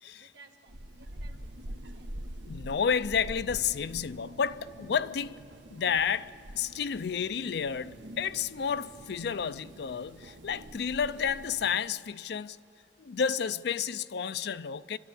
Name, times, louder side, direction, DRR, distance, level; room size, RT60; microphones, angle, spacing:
voice 1, 0.0-2.2, right 4 dB, 70° right, 2.0 m, -59 dB
sound 1, 0.7-11.8, right 1 dB, 85° right, 1.2 m, -45 dB
voice 2, 2.5-5.4 5.7-12.6 13.0-15.0, left 7 dB, 65° left, 0.4 m, -31 dB
27.5 x 12.5 x 9.7 m
head